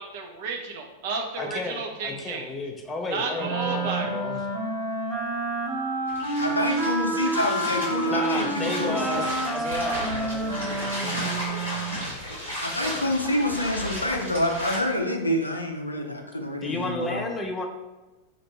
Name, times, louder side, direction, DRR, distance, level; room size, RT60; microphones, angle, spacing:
voice 1, 0.0-2.5 3.1-4.1, right 4 dB, 50° right, 2 dB, 0.6 m, -32 dB
voice 2, 1.4-4.4 8.1-12.2 12.8-13.1 16.6-17.6, left 2 dB, 15° left, 2 dB, 0.6 m, -33 dB
Wind instrument woodwind instrument, 3.4-12.0, right 2 dB, 35° right, 1.4 m, -29 dB
sound 1, 6.1-14.8, equal, 90° right, 1.4 m, -34 dB
voice 3, 6.4-9.2 12.6-17.2, left 1 dB, 85° left, 2 dB, 0.4 m, -27 dB
2.9 x 2.5 x 4.3 m, 1.1 s
figure-of-eight pair, 90°, 0 cm